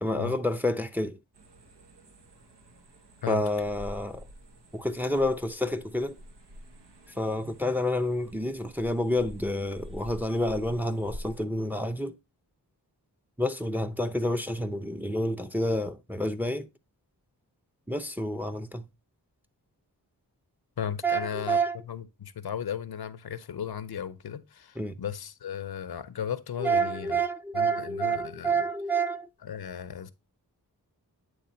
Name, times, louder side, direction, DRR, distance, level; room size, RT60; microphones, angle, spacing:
voice 1, 0.0-1.2 3.3-4.2 4.7-6.1 7.2-12.1 13.4-16.7 17.9-18.8 21.0-21.8 24.8-24.9 26.6-29.3, right 1 dB, 5° right, 0.5 m, -29 dB
sound 1, 1.3-11.5, equal, 85° right, 1.1 m, -48 dB
voice 2, 20.8-21.6 21.9-27.2 27.5-28.6 29.4-30.1, left 8 dB, 65° left, 0.6 m, -35 dB
8.7 x 3.2 x 4.2 m
cardioid pair, 50°, 40 cm